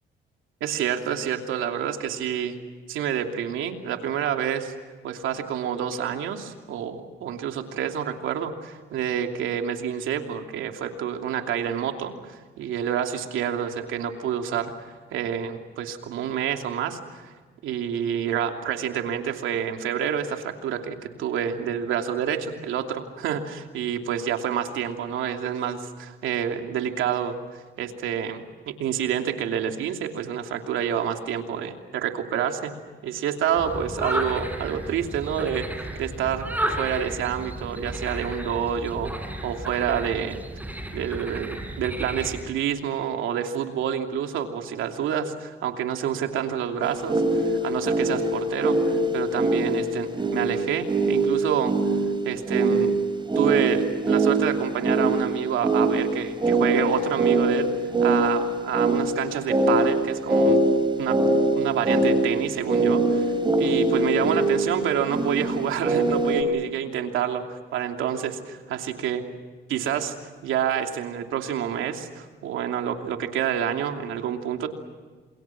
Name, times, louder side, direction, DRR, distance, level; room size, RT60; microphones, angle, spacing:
voice 1, 0.6-2.6 2.9-4.7 5.0-17.3 17.6-32.8 33.0-39.1 39.4-40.4 40.9-51.9 52.2-53.0 53.3-57.7 58.0-60.6 61.0-69.2 69.7-70.1 70.4-74.7, right 9 dB, 85° right, 4 dB, 2.9 m, -28 dB
sound 1, 33.6-42.4, right 1 dB, 10° right, 6.2 m, -33 dB
sound 2, 46.8-66.4, right 2 dB, 25° right, 4.3 m, -23 dB
29.0 x 27.5 x 6.0 m, 1.4 s
cardioid pair, 90°, 20 cm